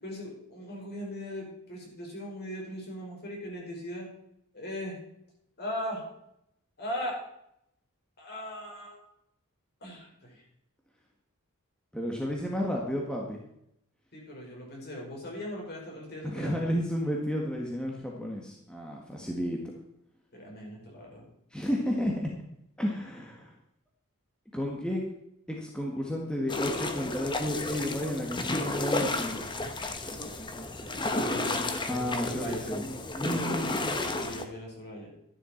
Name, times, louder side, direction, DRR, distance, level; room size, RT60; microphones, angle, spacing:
voice 1, 0.0-4.1 4.5-5.0 5.6-6.0 6.8-7.2 8.2-9.0 9.8-10.4 14.1-16.5 20.3-21.3 31.1-31.6 32.3-32.7 34.1-35.1, equal, 45° left, -2 dB, 5.3 m, -39 dB
voice 2, 11.9-13.4 16.2-19.6 21.5-22.3 22.8-23.5 24.5-25.0 25.5-29.5 31.9-32.9 33.1-34.0, equal, 5° left, -1 dB, 1.6 m, -32 dB
sound 1, 26.5-34.4, left 2 dB, 20° left, 1.2 m, -32 dB
13.0 x 11.5 x 4.5 m, 0.77 s
head